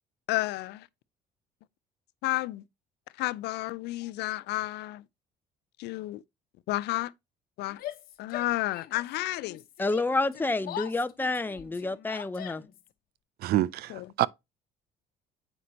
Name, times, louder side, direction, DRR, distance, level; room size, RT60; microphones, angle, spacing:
voice 1, 0.3-0.9 2.2-2.6 3.2-5.0 5.8-6.2 6.7-7.1 7.6-7.8 8.2-9.6 13.9-14.1, left 18 dB, 80° left, 0.5 m, -31 dB
Yell, 7.7-9.1 9.4-12.9, left 12 dB, 60° left, 1.0 m, -42 dB
voice 2, 9.8-12.6, left 2 dB, 10° left, 0.7 m, -29 dB
voice 3, 13.4-14.3, right 14 dB, 65° right, 0.5 m, -27 dB
8.0 x 5.1 x 2.8 m
cardioid pair, 110°, 17 cm